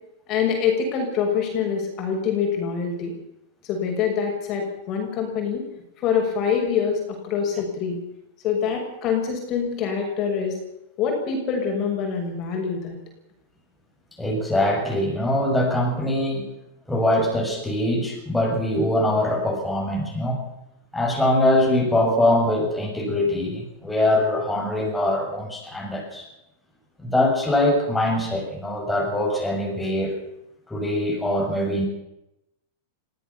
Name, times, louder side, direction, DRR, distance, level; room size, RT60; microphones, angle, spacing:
voice 1, 0.3-3.1 3.6-5.6 6.0-8.0 8.4-10.5 11.0-13.0, left 6 dB, 35° left, 2 dB, 6.6 m, -25 dB
voice 2, 14.2-16.4 16.9-20.4 20.9-26.3 27.0-30.1 30.7-31.9, left 1 dB, 5° left, -2 dB, 7.1 m, -23 dB
22.0 x 16.5 x 7.4 m, 0.87 s
supercardioid pair, 140°, 0 cm